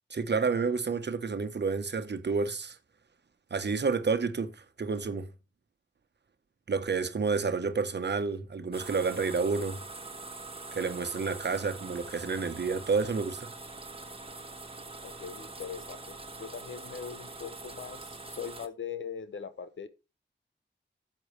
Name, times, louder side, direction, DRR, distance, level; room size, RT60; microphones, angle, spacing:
voice 1, 0.1-2.8 3.5-5.3 6.7-9.8 10.7-13.5, right 4 dB, 60° right, 1.1 m, -30 dB
sound 1, 8.7-18.7, right 3 dB, 30° right, 1.3 m, -44 dB
voice 2, 15.0-19.9, left 7 dB, 80° left, 0.9 m, -41 dB
12.5 x 7.9 x 3.3 m
cardioid pair, 55°, 20 cm